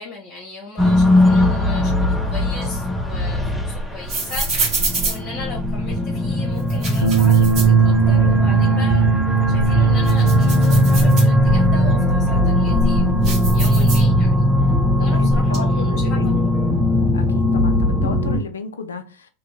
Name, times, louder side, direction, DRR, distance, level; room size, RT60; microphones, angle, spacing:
voice 1, 0.0-16.7, left 3 dB, 40° left, -2 dB, 1.1 m, -37 dB
sound 1, 0.8-18.4, equal, ahead, 0.8 m, -18 dB
sound 2, 2.6-6.0 6.6-8.4 8.8-8.9 9.4-11.8 12.3-14.5 14.8-15.6, right 2 dB, 45° right, 1.6 m, -27 dB
Bass guitar, 7.0-13.3, right 8 dB, 80° right, 0.4 m, -23 dB
voice 2, 15.0-16.3 17.1-19.3, left 5 dB, 85° left, 9 dB, 0.5 m, -33 dB
2.9 x 2.6 x 2.8 m, 0.35 s
hypercardioid pair, 95°, 0 cm